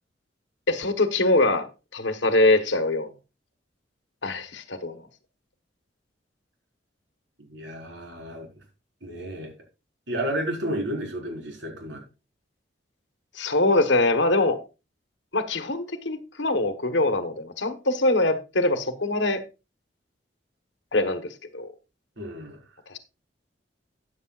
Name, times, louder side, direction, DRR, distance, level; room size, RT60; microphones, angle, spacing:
voice 1, 0.7-1.7 1.9-3.1 4.2-5.0 13.3-14.6 15.3-19.4 20.9-21.7 22.9-23.0, left 2 dB, 75° left, 1.3 m, -23 dB
voice 2, 7.4-8.5 9.0-9.5 10.1-12.0 22.2-22.6, right 1 dB, 80° right, 4.6 m, -32 dB
13.5 x 9.5 x 2.4 m
head